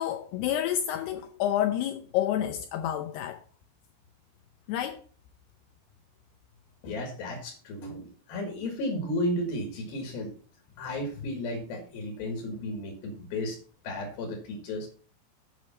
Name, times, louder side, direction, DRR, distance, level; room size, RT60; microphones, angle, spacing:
voice 1, 0.0-3.4 4.7-5.0, left 11 dB, 85° left, 2.3 m, -29 dB
voice 2, 6.8-10.3 10.8-13.6 13.8-14.9, left 1 dB, 60° left, 3.2 m, -33 dB
9.5 x 6.2 x 5.7 m
omnidirectional pair, 5.5 m